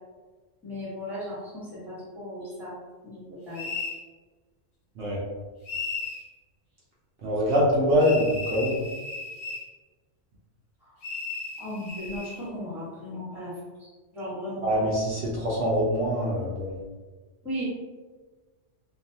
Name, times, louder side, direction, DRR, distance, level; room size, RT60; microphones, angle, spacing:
voice 1, 0.6-2.7 3.0-3.7 11.6-13.5 13.8-14.7 17.4-17.6, equal, ahead, -9 dB, 0.9 m, -36 dB
sound 1, 3.5-4.0 5.6-6.2 8.0-9.7 11.0-12.4, left 4 dB, 55° left, 0.6 m, -35 dB
voice 2, 7.2-8.8 14.6-16.8, equal, 65° right, -5 dB, 0.8 m, -24 dB
2.4 x 2.3 x 2.7 m, 1.3 s
omnidirectional pair, 1.3 m